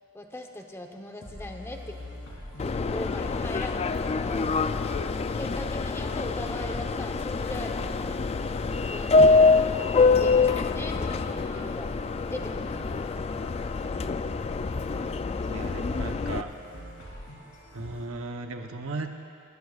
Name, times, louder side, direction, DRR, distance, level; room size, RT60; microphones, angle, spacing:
voice 1, 0.1-2.0 2.6-4.6 5.2-8.2 8.9-9.6 9.9-11.9 12.3-13.5, left 1 dB, 10° left, 3 dB, 0.8 m, -40 dB
sound 1, 1.2-18.1, left 1 dB, 65° left, 3.1 m, -45 dB
Subway metro underground, 2.6-16.4, left 4 dB, 30° left, 0.3 m, -25 dB
voice 2, 15.5-16.5 17.7-19.1, right 3 dB, 70° right, 4 dB, 0.9 m, -36 dB
19.5 x 19.0 x 2.4 m, 2.3 s
head